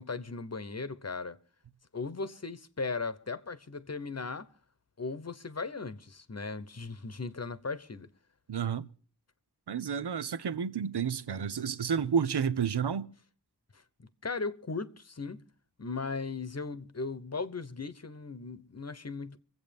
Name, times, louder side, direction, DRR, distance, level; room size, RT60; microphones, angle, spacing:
voice 1, 0.0-1.4 1.9-4.5 5.0-8.1 14.0-15.4 15.8-19.4, left 4 dB, 40° left, 1.0 m, -37 dB
voice 2, 8.5-8.9 9.7-13.1, right 7 dB, 75° right, 0.8 m, -30 dB
24.0 x 8.1 x 5.3 m
wide cardioid pair, 50°, 40 cm